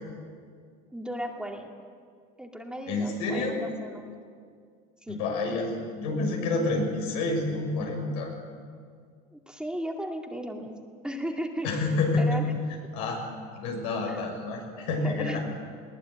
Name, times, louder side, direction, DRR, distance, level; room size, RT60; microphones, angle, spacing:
voice 1, 0.9-1.7 2.4-4.1 5.0-5.2 9.3-10.8 11.0-12.5 14.1-14.2 14.7-15.4, equal, 5° right, 1 dB, 2.3 m, -36 dB
voice 2, 2.9-3.6 5.1-8.3 11.6-12.4 12.9-13.2 13.5-15.4, left 3 dB, 85° left, 1 dB, 6.8 m, -28 dB
21.5 x 18.5 x 9.5 m, 2.1 s
supercardioid pair, 115°, 20 cm